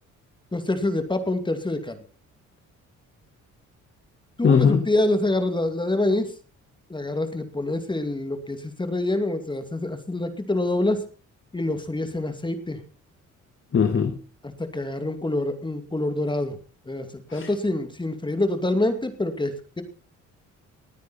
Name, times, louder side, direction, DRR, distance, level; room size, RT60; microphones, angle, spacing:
voice 1, 0.5-2.0 4.4-6.3 6.9-11.0 11.5-12.8 14.4-16.6 16.9-17.1 17.3-19.8, left 2 dB, 15° left, 2.5 m, -26 dB
voice 2, 4.4-4.9 13.7-14.2 17.3-17.5, left 6 dB, 40° left, 1.7 m, -20 dB
20.0 x 9.4 x 4.3 m
cardioid pair, 90°, 30 cm